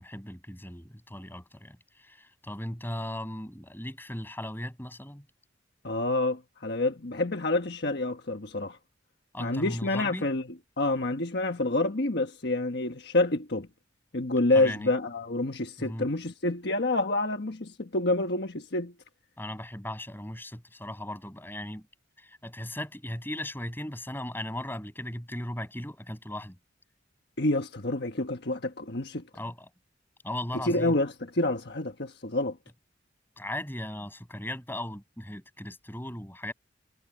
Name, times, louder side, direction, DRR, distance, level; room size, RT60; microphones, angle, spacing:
voice 1, 0.0-5.2 9.3-10.3 14.5-14.9 15.8-16.1 19.4-21.9 22.2-26.6 29.3-29.7 30.2-30.9 33.4-36.5, left 1 dB, 10° left, 7.5 m, -37 dB
voice 2, 5.8-8.8 9.4-10.4 10.8-13.7 14.1-18.9 27.4-29.2 30.6-32.6, left 2 dB, 60° left, 1.4 m, -28 dB
head